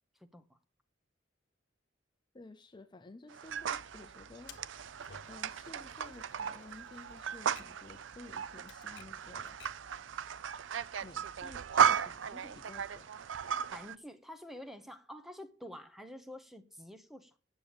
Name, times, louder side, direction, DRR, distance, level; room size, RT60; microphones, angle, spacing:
voice 1, 0.2-0.6 13.7-17.4, left 1 dB, ahead, 0.9 m, -48 dB
voice 2, 2.3-4.6 5.2-9.6 11.0-13.2, left 2 dB, 25° left, 0.6 m, -53 dB
sound 1, 3.3-13.9, right 7 dB, 90° right, 0.5 m, -35 dB
sound 2, 3.4-13.0, left 2 dB, 25° right, 2.7 m, -64 dB
Typewriter, 4.5-9.9, left 6 dB, 70° left, 1.1 m, -58 dB
9.1 x 7.0 x 8.9 m
head